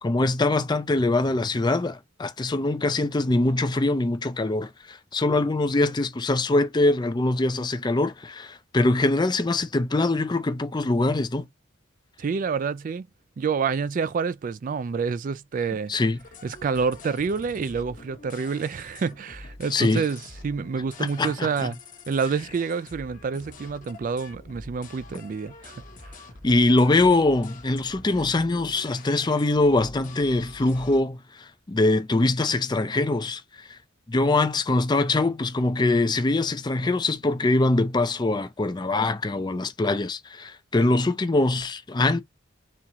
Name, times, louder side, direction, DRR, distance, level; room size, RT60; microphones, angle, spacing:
voice 1, 0.0-11.5 15.9-16.2 19.7-20.0 21.0-21.7 26.4-33.8 34.1-42.2, left 2 dB, 20° left, 0.5 m, -23 dB
voice 2, 12.2-13.1 13.4-15.9 16.4-21.8 22.1-25.7 26.0-26.2, right 5 dB, 40° right, 0.3 m, -28 dB
sound 1, 16.2-31.0, left 3 dB, 40° left, 0.9 m, -45 dB
4.4 x 3.6 x 2.8 m
head